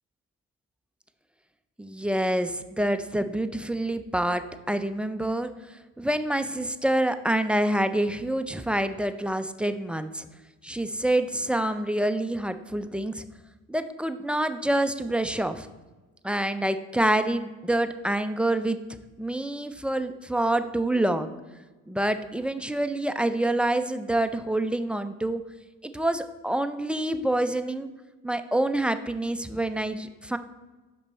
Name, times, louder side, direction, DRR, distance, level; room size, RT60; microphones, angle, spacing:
voice 1, 1.8-10.3 10.6-13.2 13.7-15.7 16.2-18.8 19.2-21.4 21.9-25.4 25.8-27.9 28.2-30.4, right 1 dB, 5° right, 9 dB, 0.3 m, -27 dB
6.0 x 5.4 x 4.2 m, 1.2 s
cardioid pair, 105°, 30 cm